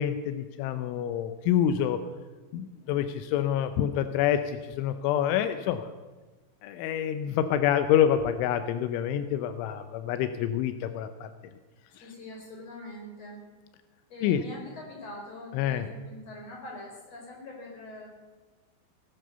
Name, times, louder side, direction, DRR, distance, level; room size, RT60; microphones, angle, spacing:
voice 1, 0.0-2.0 2.5-5.9 6.6-11.3 14.2-14.4 15.5-15.9, left 10 dB, 85° left, 10 dB, 3.2 m, -27 dB
voice 2, 12.0-13.4 14.1-18.1, left 1 dB, 35° left, 0 dB, 5.2 m, -43 dB
18.5 x 11.5 x 6.8 m, 1.3 s
omnidirectional pair, 5.4 m